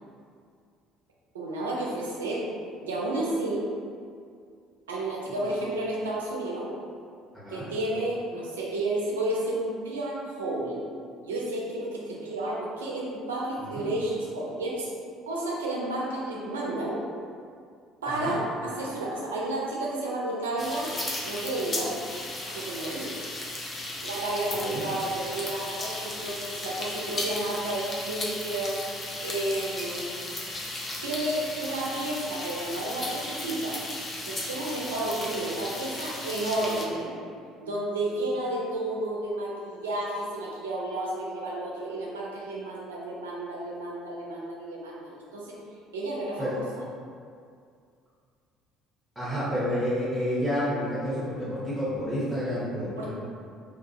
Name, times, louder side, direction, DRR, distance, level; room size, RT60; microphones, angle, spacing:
voice 1, 1.3-2.5 2.8-3.7 4.9-6.8 7.5-10.8 11.2-14.9 15.3-17.0 18.0-20.9 21.2-22.0 22.5-23.1 24.0-28.8 29.2-30.0 31.0-33.8 34.3-37.1 37.6-45.6 45.9-46.6 53.0-53.1, right 1 dB, 75° right, -4 dB, 0.4 m, -31 dB
voice 2, 7.3-7.7 13.6-13.9 18.1-18.3 24.6-24.9 46.4-46.6 49.2-53.1, equal, ahead, -12 dB, 0.8 m, -30 dB
sound 1, 20.6-36.9, left 2 dB, 30° left, 0.5 m, -35 dB
2.4 x 2.3 x 2.6 m, 2.3 s
figure-of-eight pair, 55°, 0 cm